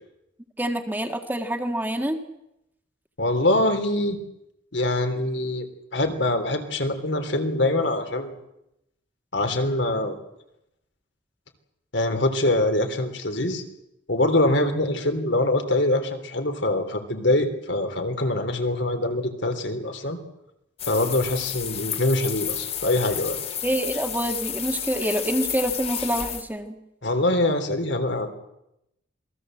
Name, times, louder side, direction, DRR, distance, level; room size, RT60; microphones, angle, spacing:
voice 1, 0.6-2.2 23.6-26.8, right 1 dB, 10° right, 6 dB, 1.7 m, -26 dB
voice 2, 3.2-4.2 4.7-5.7 5.9-8.3 9.3-10.2 11.9-13.6 14.1-20.2 20.9-23.4 27.0-28.3, left 1 dB, 65° left, 6 dB, 3.4 m, -24 dB
sound 1, 20.8-26.4, left 9 dB, 30° left, 2.0 m, -31 dB
27.5 x 20.5 x 7.8 m, 0.84 s
head